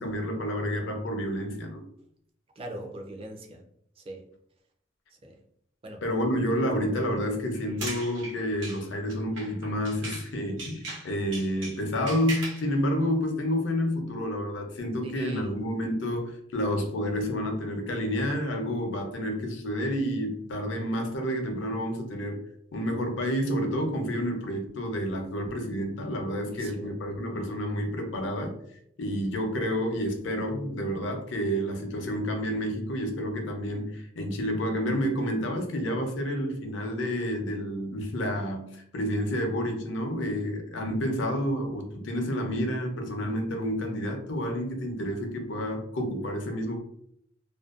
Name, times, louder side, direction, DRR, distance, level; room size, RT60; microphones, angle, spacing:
voice 1, 0.0-1.9 6.0-22.4 22.7-28.5 29.0-46.8, equal, 75° left, 3 dB, 0.6 m, -29 dB
voice 2, 2.6-3.6 4.0-4.2 5.2-5.4 5.8-6.0 15.0-15.6 26.5-27.0, right 1 dB, 30° right, 3 dB, 0.4 m, -40 dB
sound 1, 7.5-10.3 10.6-12.7, right 2 dB, 85° right, 0.8 m, -39 dB
2.5 x 2.2 x 2.3 m, 0.70 s
head